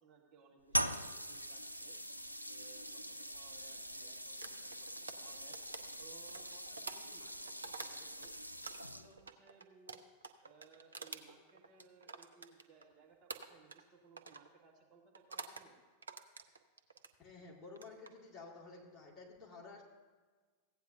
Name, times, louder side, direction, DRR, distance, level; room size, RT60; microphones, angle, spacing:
voice 1, 0.0-2.0 2.5-5.6 6.0-8.3 8.8-10.0 10.4-15.8, right 5 dB, 35° right, -1 dB, 1.5 m, -63 dB
sound 1, 0.7-9.3, right 1 dB, 90° left, 0.3 m, -42 dB
sound 2, 4.4-8.3 8.6-12.9 13.3-13.9 14.2-14.5 15.1-15.7 16.0-17.1 17.7-18.1, right 4 dB, 75° right, 0.5 m, -49 dB
voice 2, 17.2-19.8, left 4 dB, 25° left, -2 dB, 2.3 m, -52 dB
15.5 x 8.8 x 2.7 m, 1.4 s
figure-of-eight pair, 90°, 0 cm